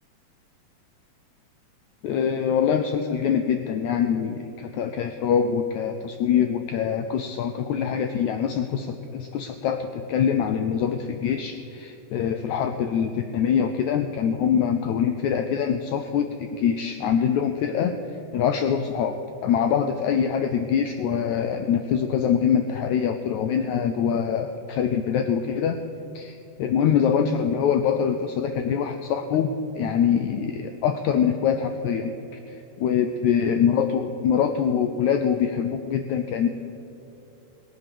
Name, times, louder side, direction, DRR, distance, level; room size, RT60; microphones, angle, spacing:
voice 1, 2.0-25.8 26.2-32.1 32.5-32.6 32.8-36.5, left 7 dB, 80° left, 7 dB, 1.7 m, -24 dB
19.5 x 9.3 x 6.8 m, 3.0 s
omnidirectional pair, 3.9 m